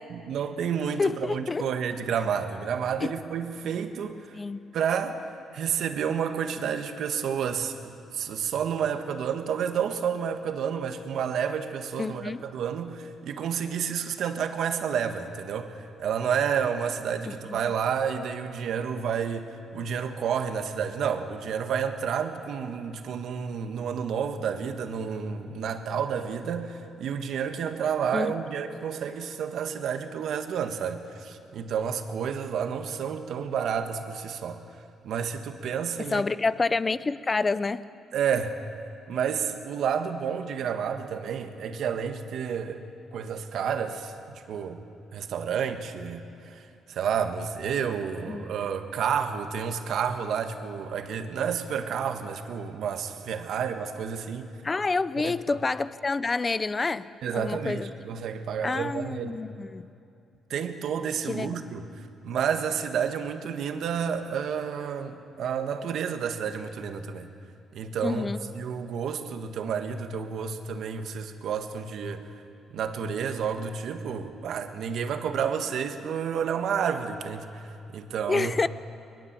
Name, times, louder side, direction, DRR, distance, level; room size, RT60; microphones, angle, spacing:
voice 1, 0.1-4.4 4.7-5.2 5.5-34.6 35.0-36.2 38.1-38.6 39.1-42.8 43.1-44.8 45.1-54.5 55.2-55.6 57.2-59.4 60.5-67.3 67.7-72.3 72.7-78.5, right 7 dB, 70° right, 7 dB, 1.6 m, -30 dB
voice 2, 1.0-1.7 3.0-3.1 4.3-4.6 12.0-12.4 17.2-17.6 28.1-28.3 36.1-37.8 48.3-48.4 54.6-57.9 58.6-59.9 61.3-61.6 68.0-68.4 78.3-78.7, left 3 dB, 30° left, 16 dB, 0.7 m, -28 dB
22.0 x 21.5 x 7.6 m, 2.7 s
cardioid pair, 90°, 0 cm